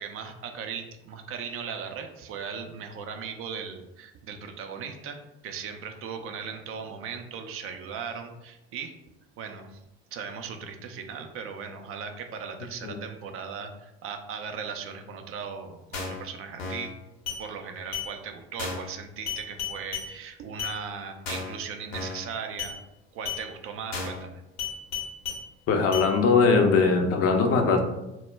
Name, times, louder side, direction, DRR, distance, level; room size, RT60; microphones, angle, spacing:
voice 1, 0.0-5.2 5.4-8.9 9.4-9.8 10.1-16.9 17.4-22.8 23.1-24.4, right 6 dB, 45° right, 5 dB, 0.4 m, -38 dB
sound 1, 15.9-16.2 16.6-16.9 17.3-17.4 17.9-18.1 18.6-18.9 19.3-20.1 20.6-20.8 21.3-21.6 21.9-22.2 22.6-22.8 23.3-23.4 23.9-24.2 24.6-25.4 25.9-26.1, left 6 dB, 80° left, 0.8 m, -33 dB
voice 2, 25.7-27.8, left 4 dB, 50° left, 4 dB, 0.5 m, -21 dB
2.1 x 2.0 x 3.2 m, 0.93 s
hypercardioid pair, 65°, 31 cm